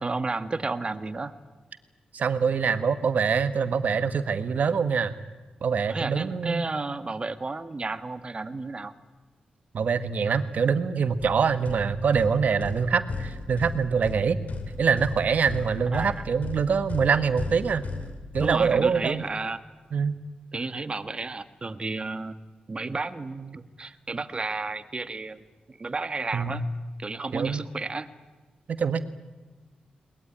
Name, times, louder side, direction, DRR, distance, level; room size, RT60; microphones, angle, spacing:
voice 1, 0.0-1.3 5.9-8.9 15.9-16.2 18.4-19.6 20.5-22.4 22.7-26.6 27.0-28.1, right 3 dB, 35° right, 11 dB, 1.5 m, -32 dB
voice 2, 2.1-5.1 5.6-6.6 9.7-14.4 14.8-17.8 18.3-19.2 19.9-20.1 26.3-26.7 27.3-27.6 28.7-29.0, right 6 dB, 70° right, 12 dB, 1.4 m, -24 dB
sound 1, 11.2-19.2, left 3 dB, 70° left, 3.1 m, -37 dB
21.5 x 20.5 x 10.0 m, 1.2 s
cardioid pair, 65°, 3 cm